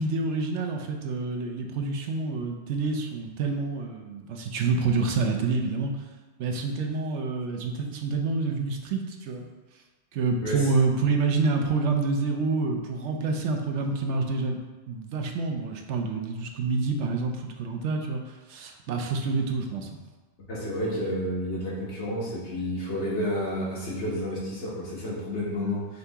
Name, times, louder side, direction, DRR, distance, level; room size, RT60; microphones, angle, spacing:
voice 1, 0.0-5.9 6.4-9.5 10.1-14.6 14.9-18.2 18.5-19.9, right 4 dB, 80° right, 3 dB, 0.9 m, -27 dB
voice 2, 20.4-26.0, equal, 75° left, -6 dB, 1.5 m, -30 dB
5.2 x 2.8 x 3.4 m, 1.3 s
omnidirectional pair, 1.2 m